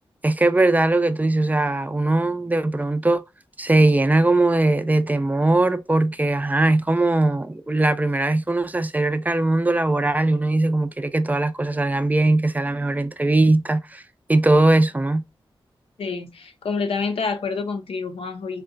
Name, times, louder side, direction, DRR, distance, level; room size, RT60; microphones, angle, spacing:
voice 1, 0.2-3.2 3.6-14.0 14.3-15.2, right 2 dB, 15° right, 0.4 m, -20 dB
voice 2, 16.0-18.6, left 4 dB, 90° left, 0.6 m, -27 dB
3.8 x 2.2 x 2.4 m
cardioid pair, 60°, 9 cm